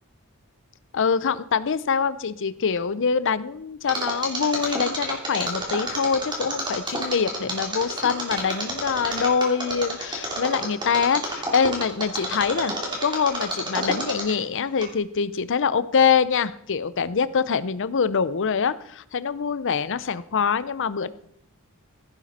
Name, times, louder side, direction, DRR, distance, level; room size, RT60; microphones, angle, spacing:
voice 1, 0.9-12.7 13.0-21.1, left 6 dB, 60° left, 16 dB, 0.6 m, -24 dB
Mechanisms, 3.9-14.5 14.8-14.9, right 1 dB, 20° right, 3.3 m, -29 dB
15.5 x 9.2 x 4.2 m, 0.70 s
head